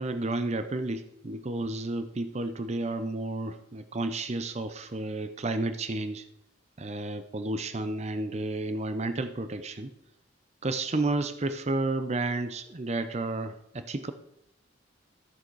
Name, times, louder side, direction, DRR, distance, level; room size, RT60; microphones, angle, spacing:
voice 1, 0.0-6.2 6.8-9.9 10.6-14.1, right 2 dB, 35° right, 10 dB, 0.6 m, -31 dB
13.5 x 6.6 x 4.7 m, 0.80 s
head